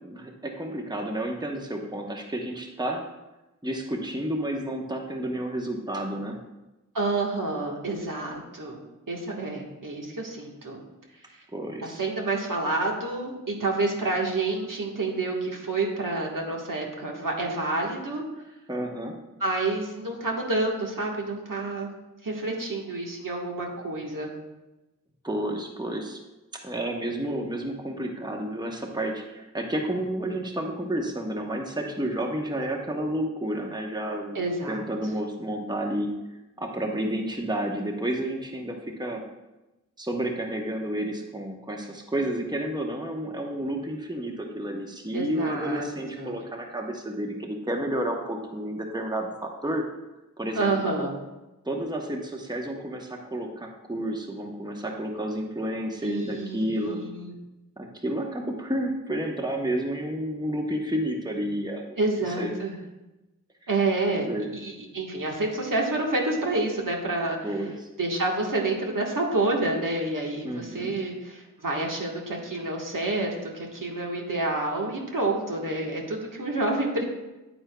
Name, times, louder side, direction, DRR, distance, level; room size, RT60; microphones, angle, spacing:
voice 1, 0.0-3.0 3.6-6.4 11.5-12.0 18.7-19.2 25.2-26.2 26.5-36.1 36.6-39.2 40.0-49.8 50.4-50.7 51.6-57.0 57.8-62.0 62.4-62.5 63.6-63.7 64.3-64.5 67.4-67.9 70.4-70.9, right 1 dB, 10° right, 1 dB, 1.0 m, -31 dB
voice 2, 6.9-8.8 9.1-10.8 11.3-11.4 11.8-18.2 19.4-21.9 22.2-24.3 34.3-34.8 45.1-46.4 50.5-51.1 56.0-57.3 62.0-62.8 63.7-67.4 68.0-77.0, right 2 dB, 70° right, -1 dB, 1.5 m, -28 dB
9.3 x 8.6 x 2.3 m, 1.0 s
wide cardioid pair, 40°, 33 cm